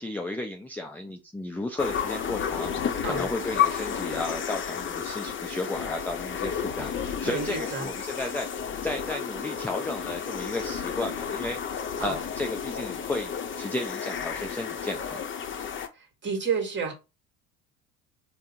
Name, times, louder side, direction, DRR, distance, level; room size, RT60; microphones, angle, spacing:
voice 1, 0.0-8.5 8.8-15.2, left 2 dB, 5° left, 0.4 m, -34 dB
sound 1, 1.8-15.9, left 8 dB, 30° left, 0.8 m, -32 dB
voice 2, 7.2-7.9 12.0-12.2 15.9-16.9, right 5 dB, 25° right, 1.6 m, -30 dB
3.5 x 2.2 x 4.3 m
figure-of-eight pair, 65°, 42 cm